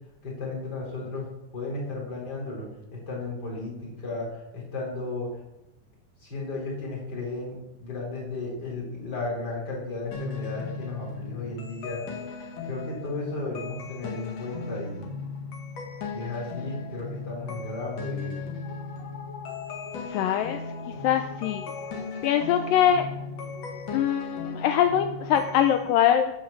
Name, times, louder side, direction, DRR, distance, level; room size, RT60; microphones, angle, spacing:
voice 1, 0.2-1.3 1.5-2.6 2.9-5.3 6.2-12.1 12.7-15.0 16.1-18.4, left 3 dB, 25° left, -2 dB, 4.4 m, -34 dB
sound 1, 10.1-25.8, left 4 dB, 50° left, 2.6 m, -37 dB
voice 2, 20.1-20.6 21.0-21.7 22.2-23.1 23.9-26.3, left 10 dB, 80° left, 7 dB, 2.1 m, -23 dB
12.5 x 7.2 x 7.2 m, 0.90 s
omnidirectional pair, 4.5 m